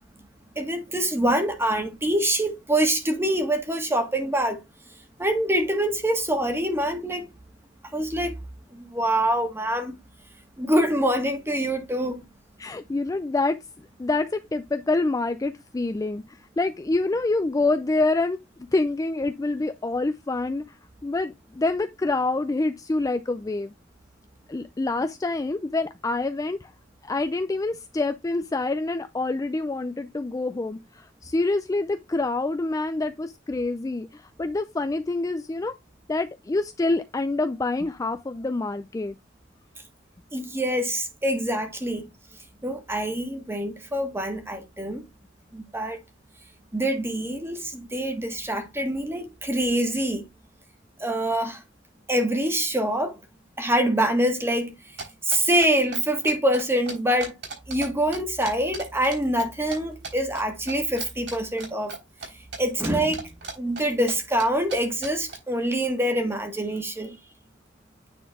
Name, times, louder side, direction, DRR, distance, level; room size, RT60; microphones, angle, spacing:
voice 1, 0.5-4.6 5.2-7.3 7.9-8.3 8.7-9.9 10.6-12.2 40.3-42.1 42.6-45.0 45.5-46.0 46.7-50.2 51.0-51.6 52.1-53.2 53.6-54.7 55.2-57.3 57.7-61.9 62.6-63.3 63.6-67.2, right 1 dB, 15° right, 1.6 m, -25 dB
voice 2, 12.6-13.6 14.0-16.2 16.6-18.4 18.7-20.6 21.0-23.7 24.5-26.7 27.0-35.7 36.1-39.1, left 2 dB, 20° left, 0.3 m, -26 dB
sound 1, 55.0-57.9 58.1-59.8 60.0-60.4 60.7-62.3 62.5-64.1 64.4-64.5 64.7-64.8 65.0-65.3, right 4 dB, 65° right, 3.7 m, -36 dB
9.2 x 3.9 x 3.5 m
head